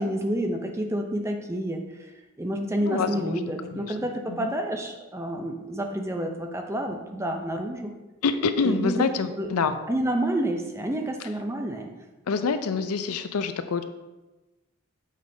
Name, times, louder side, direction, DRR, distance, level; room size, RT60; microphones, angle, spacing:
voice 1, 0.0-2.1 2.4-7.9 8.6-9.0 9.4-9.5 9.9-11.9, right 1 dB, 10° right, 4 dB, 0.5 m, -29 dB
voice 2, 2.8-3.4 3.7-3.9 4.3-4.5 8.2-9.8 12.3-13.8, left 5 dB, 90° left, 10 dB, 0.5 m, -26 dB
6.6 x 6.3 x 2.7 m, 1.1 s
head